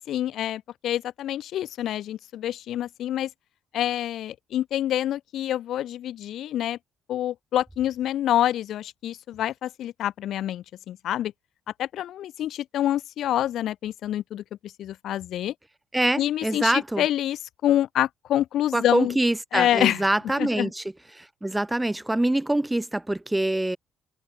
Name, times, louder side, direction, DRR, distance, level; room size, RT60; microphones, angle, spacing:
voice 1, 0.1-3.3 3.7-6.8 7.1-11.3 11.8-15.5 16.2-19.2 19.5-20.1 20.4-20.7, left 12 dB, 60° left, 2.0 m, -27 dB
voice 2, 15.9-17.0 18.7-20.8 21.1-23.8, right 1 dB, 5° right, 1.1 m, -25 dB
cardioid pair, 170°, 0 cm